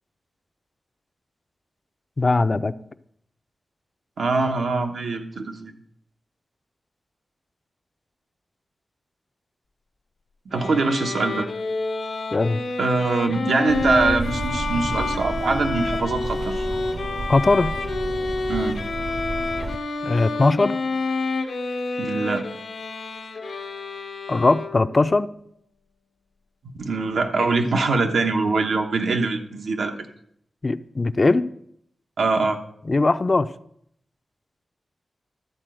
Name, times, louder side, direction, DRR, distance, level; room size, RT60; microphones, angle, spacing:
voice 1, 2.2-2.7 12.3-12.6 17.3-17.8 20.0-20.8 24.3-25.3 30.6-31.4 32.9-33.5, left 3 dB, 35° left, 11 dB, 0.4 m, -20 dB
voice 2, 4.2-5.7 10.5-11.5 12.8-16.6 18.5-18.8 22.0-22.5 26.8-29.9 32.2-32.6, right 3 dB, 85° right, 4 dB, 1.1 m, -23 dB
Bowed string instrument, 10.5-25.0, left 3 dB, 85° left, 1.1 m, -29 dB
sound 1, 13.7-19.8, right 3 dB, 55° right, 0.5 m, -31 dB
12.5 x 4.2 x 7.7 m, 0.70 s
wide cardioid pair, 95°, 0 cm